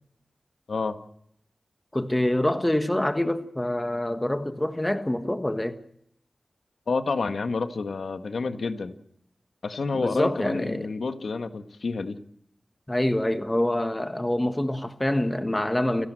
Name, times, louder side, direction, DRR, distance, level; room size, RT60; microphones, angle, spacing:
voice 1, 1.9-5.8 9.9-10.9 12.9-16.1, left 1 dB, 15° left, 1.5 m, -26 dB
voice 2, 6.9-9.0 9.6-12.2, left 4 dB, 80° left, 1.6 m, -29 dB
29.0 x 11.5 x 7.7 m
wide cardioid pair, 60°, 0 cm